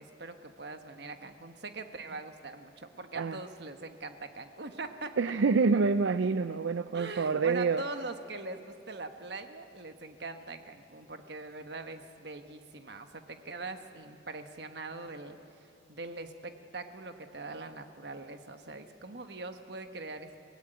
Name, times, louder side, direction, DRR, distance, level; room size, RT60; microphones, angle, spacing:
voice 1, 0.0-5.1 6.9-20.3, right 3 dB, 60° right, 7 dB, 1.3 m, -42 dB
voice 2, 5.2-7.8, right 4 dB, 80° right, 12 dB, 0.5 m, -27 dB
23.0 x 17.5 x 9.2 m, 2.5 s
head